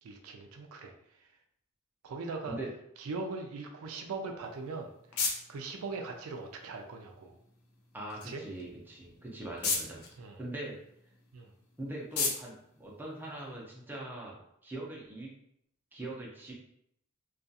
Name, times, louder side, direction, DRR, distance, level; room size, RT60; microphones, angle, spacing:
voice 1, 0.0-1.3 2.0-2.6 3.0-4.9 5.5-7.4 8.2-8.4 10.2-10.4 11.3-11.5, right 3 dB, 85° right, 3 dB, 0.4 m, -40 dB
sound 1, 4.4-13.8, left 4 dB, 85° left, 0.5 m, -39 dB
voice 2, 7.9-10.0 10.4-10.8 11.8-14.4 14.6-15.3 15.9-16.5, right 1 dB, 10° right, -4 dB, 0.5 m, -41 dB
2.4 x 2.3 x 2.6 m, 0.72 s
head